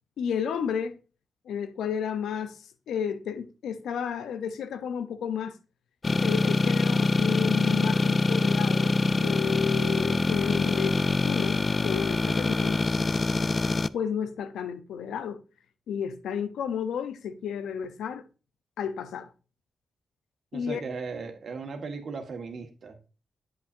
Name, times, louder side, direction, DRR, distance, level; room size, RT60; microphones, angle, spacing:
voice 1, 0.2-1.0 1.5-2.6 2.9-5.6 6.2-12.8 13.9-15.4 15.9-18.2 18.8-19.3 20.5-20.8, left 7 dB, 85° left, 0.7 m, -32 dB
sound 1, 6.0-13.9, left 3 dB, 35° left, 0.4 m, -24 dB
voice 2, 20.5-23.0, right 4 dB, 65° right, 1.6 m, -37 dB
8.5 x 7.6 x 2.6 m
cardioid pair, 55°, 0 cm